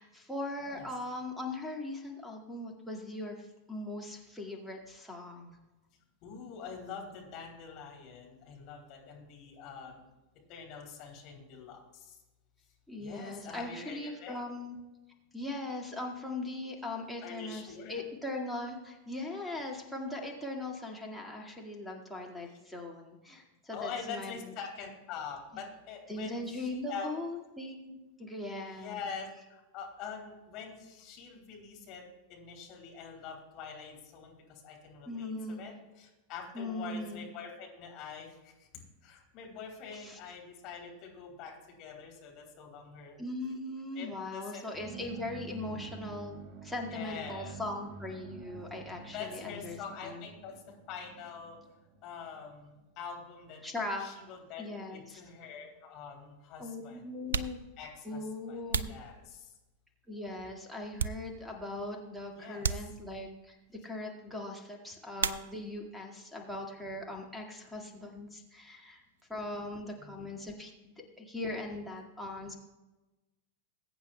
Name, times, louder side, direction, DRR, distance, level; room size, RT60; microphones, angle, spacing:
voice 1, 0.0-5.6 12.9-14.8 15.3-24.4 26.1-29.0 35.1-35.7 36.5-37.3 39.9-40.2 43.2-49.8 50.0-50.2 53.6-54.0 54.6-55.2 56.6-57.6 58.0-58.9 60.1-69.0 69.3-72.6, left 2 dB, ahead, 2 dB, 1.9 m, -40 dB
voice 2, 6.2-10.0 10.5-12.2 13.0-14.4 17.2-18.0 23.7-27.1 28.7-32.0 32.3-38.7 39.0-41.5 41.8-43.2 43.9-44.7 46.9-47.5 49.1-50.5 50.9-51.6 52.0-53.6 54.0-57.1 57.8-59.5 62.3-62.9 70.0-70.3, left 6 dB, 40° left, 0 dB, 3.1 m, -45 dB
sound 1, 44.7-52.5, right 5 dB, 35° right, 0.8 m, -48 dB
sound 2, 55.4-55.5 56.4-56.5 57.1-59.8 60.3-61.7 62.0-62.1 62.6-63.4 65.1-65.9 66.2-66.9 67.2-69.3, right 7 dB, 65° right, 0.4 m, -38 dB
21.0 x 8.7 x 2.2 m, 1.1 s
figure-of-eight pair, 90°, 0 cm